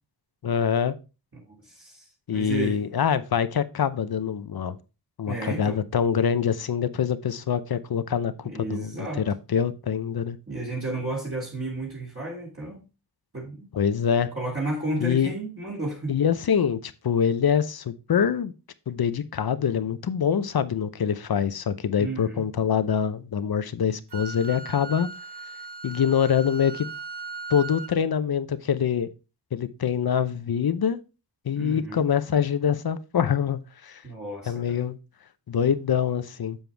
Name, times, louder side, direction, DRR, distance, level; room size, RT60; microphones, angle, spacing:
voice 1, 0.4-1.0 2.3-4.8 5.2-10.4 13.7-14.3 15.0-15.3 16.1-18.5 18.9-25.1 25.8-26.9 27.5-29.1 29.5-31.0 31.4-34.0 34.5-35.0 35.5-36.6, left 7 dB, 60° left, 0.8 m, -25 dB
voice 2, 1.6-2.1 2.3-2.8 5.3-5.8 8.4-9.2 10.5-12.8 13.3-13.7 14.3-16.2 22.0-22.4 31.5-32.0 34.0-34.8, right 2 dB, 30° right, 2.8 m, -32 dB
Wind instrument woodwind instrument, 24.1-28.0, right 4 dB, 70° right, 1.4 m, -38 dB
7.7 x 7.2 x 3.4 m
wide cardioid pair, 105°, 41 cm